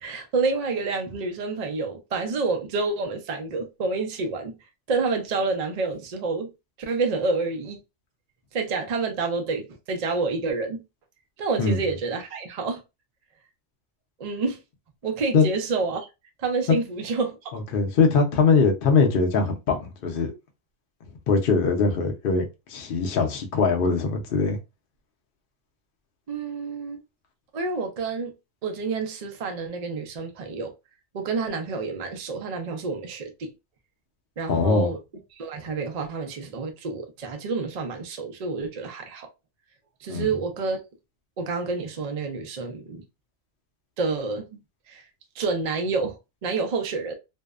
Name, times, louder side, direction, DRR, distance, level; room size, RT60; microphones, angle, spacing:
voice 1, 0.0-4.5 4.9-6.5 6.8-7.8 8.5-10.8 11.4-12.8 14.2-14.6 15.0-16.1 16.4-17.5 26.3-27.0 27.5-28.3 28.6-30.7 31.1-33.5 34.4-35.0 35.3-39.3 40.0-40.8 41.4-43.0 44.0-44.5 44.9-45.0 45.4-47.1, right 4 dB, 75° right, 0.3 m, -28 dB
voice 2, 17.5-20.3 21.3-24.6 34.5-34.9 40.1-40.3, left 4 dB, 55° left, 0.7 m, -22 dB
2.6 x 2.1 x 2.3 m
omnidirectional pair, 1.4 m